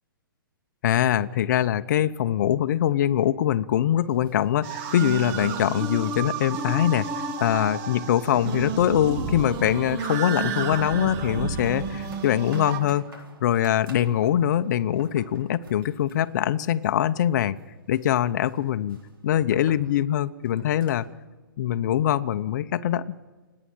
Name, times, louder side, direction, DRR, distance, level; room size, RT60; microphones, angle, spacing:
voice 1, 0.8-17.6 17.9-19.0 19.2-21.1 21.6-23.2, left 11 dB, 55° left, 10 dB, 0.8 m, -23 dB
sound 1, 4.0-6.4 6.6-6.7 7.1-7.2 7.6-21.2, right 2 dB, 85° right, 4.4 m, -50 dB
sound 2, 4.6-12.8, right 5 dB, 35° right, 1.7 m, -31 dB
29.5 x 9.9 x 9.0 m, 1.3 s
hypercardioid pair, 140°, 12 cm